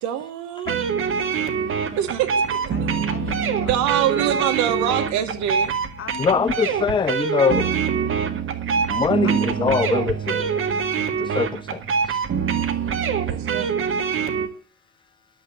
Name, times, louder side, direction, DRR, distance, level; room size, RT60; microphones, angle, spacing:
voice 1, 0.0-0.7 2.0-2.9 3.6-5.7 12.6-12.7 13.3-13.7, right 11 dB, 55° right, 2.0 m, -25 dB
sound 1, 0.7-14.5, right 6 dB, 35° right, 1.8 m, -24 dB
voice 2, 1.8-4.3 6.0-6.7 9.2-9.4 13.4-14.0, left 9 dB, 40° left, 2.8 m, -42 dB
voice 3, 6.2-7.7 8.9-10.6 11.2-12.2, left 5 dB, 15° left, 0.6 m, -23 dB
11.5 x 8.8 x 7.7 m
figure-of-eight pair, 60°, 35 cm